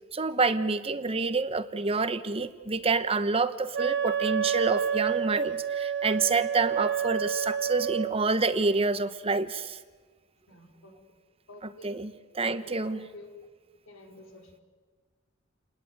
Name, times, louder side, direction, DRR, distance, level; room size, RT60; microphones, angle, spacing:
voice 1, 0.1-9.8 11.8-13.1, right 3 dB, 30° right, 12 dB, 1.0 m, -28 dB
Wind instrument woodwind instrument, 3.7-8.2, right 8 dB, 55° right, 1.7 m, -29 dB
voice 2, 10.5-10.9 11.5-11.9 12.4-13.3 13.9-14.6, left 1 dB, 70° left, 3 dB, 4.8 m, -50 dB
29.5 x 20.0 x 9.6 m, 1.5 s
head